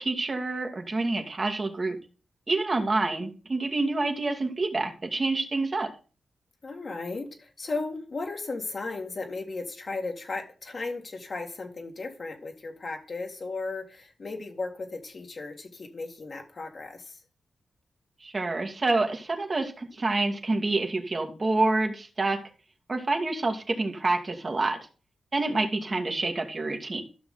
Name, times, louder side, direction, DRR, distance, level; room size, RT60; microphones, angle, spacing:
voice 1, 0.0-2.0 2.5-5.9 18.2-22.4 22.9-24.8 25.3-27.0, right 2 dB, 45° right, 4 dB, 2.0 m, -27 dB
voice 2, 6.6-17.2, left 3 dB, 55° left, 3 dB, 2.1 m, -35 dB
13.5 x 6.0 x 3.9 m, 0.35 s
cardioid pair, 50°, 0 cm